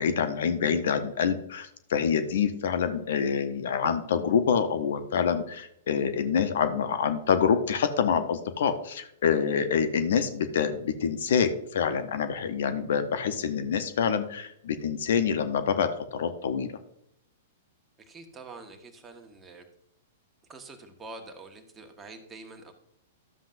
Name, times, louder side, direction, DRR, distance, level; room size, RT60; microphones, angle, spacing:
voice 1, 0.0-16.8, left 7 dB, 65° left, 9 dB, 0.8 m, -26 dB
voice 2, 18.1-19.6 20.5-22.7, right 3 dB, 20° right, 4 dB, 1.4 m, -46 dB
12.5 x 7.4 x 2.6 m, 0.73 s
figure-of-eight pair, 110°, 0 cm